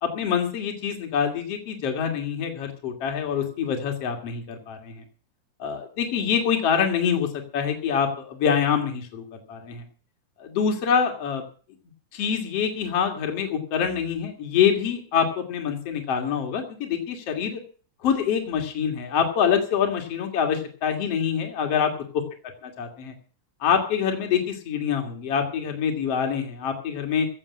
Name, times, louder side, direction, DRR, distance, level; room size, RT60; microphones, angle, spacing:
voice 1, 0.0-5.0 5.6-7.3 7.5-9.8 10.4-11.4 12.1-17.6 18.0-21.9 22.8-23.1 23.6-27.3, left 7 dB, 50° left, 3 dB, 3.3 m, -25 dB
16.0 x 7.8 x 8.5 m, 0.40 s
omnidirectional pair, 3.6 m